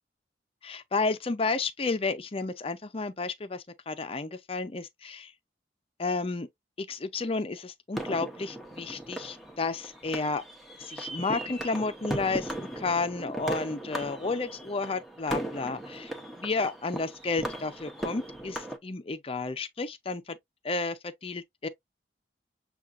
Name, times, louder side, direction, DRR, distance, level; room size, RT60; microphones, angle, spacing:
voice 1, 0.6-5.3 6.0-6.5 6.8-10.4 10.8-16.1 16.4-20.4 20.6-21.7, left 3 dB, 35° left, 0.5 m, -32 dB
sound 1, 7.9-18.8, right 1 dB, ahead, 0.8 m, -37 dB
7.1 x 2.4 x 2.5 m
head